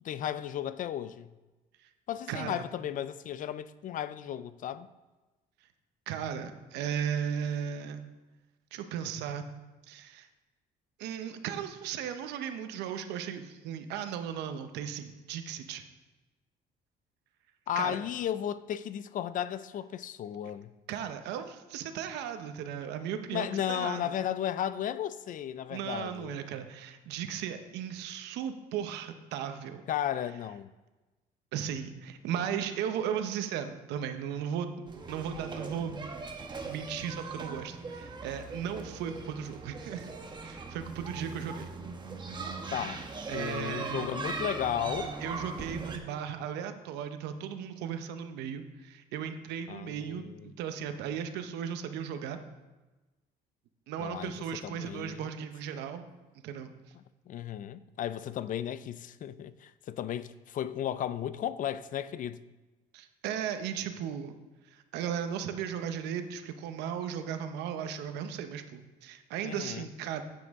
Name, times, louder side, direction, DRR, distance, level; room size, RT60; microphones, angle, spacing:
voice 1, 0.0-1.3 2.1-4.9 17.7-20.7 23.3-26.3 29.9-30.7 42.7-43.1 43.3-45.1 49.7-50.5 54.0-54.3 54.6-55.2 57.3-62.4 69.4-69.9, left 10 dB, 50° left, 0.4 m, -34 dB
voice 2, 2.3-2.6 6.1-8.0 8.7-9.5 9.9-10.3 11.0-15.8 17.8-18.0 20.9-24.1 25.7-29.8 31.5-36.1 36.4-40.1 40.4-41.7 43.3-44.1 45.2-52.4 53.9-56.0 56.4-56.7 62.9-64.4 64.7-70.2, right 8 dB, 85° right, 0.8 m, -36 dB
sound 1, 34.9-46.0, right 3 dB, 25° right, 1.2 m, -40 dB
9.4 x 8.4 x 3.6 m
cardioid pair, 110°, 17 cm